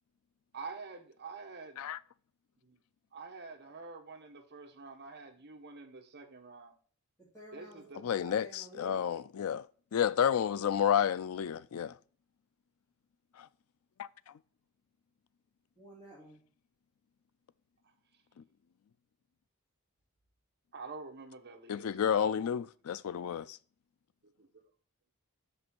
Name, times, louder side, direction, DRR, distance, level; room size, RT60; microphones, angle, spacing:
voice 1, 0.5-1.8 2.6-2.8 3.1-6.8 7.5-8.0 20.7-22.1 24.4-24.5, right 4 dB, 50° right, 1.2 m, -47 dB
voice 2, 7.2-9.1 15.7-16.4, equal, 15° left, 2.9 m, -52 dB
voice 3, 8.0-12.0 13.3-13.5 14.0-14.4 18.4-18.5 21.7-23.6, left 8 dB, 75° left, 0.4 m, -31 dB
6.3 x 5.4 x 4.4 m
head